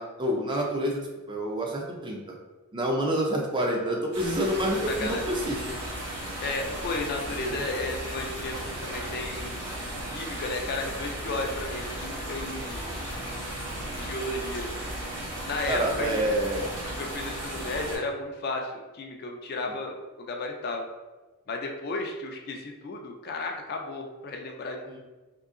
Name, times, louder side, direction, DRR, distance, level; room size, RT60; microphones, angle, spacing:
voice 1, 0.0-2.2 2.7-5.7 7.4-7.6 15.7-16.7 24.9-25.0, right 1 dB, 20° right, 0 dB, 0.4 m, -28 dB
sound 1, 4.1-18.0, right 1 dB, 85° right, 1.2 m, -35 dB
voice 2, 4.9-5.2 6.4-9.6 10.1-12.9 14.0-14.7 15.5-16.4 17.0-20.9 21.5-25.0, left 2 dB, 45° left, 2 dB, 0.3 m, -33 dB
3.7 x 2.7 x 2.4 m, 1.2 s
head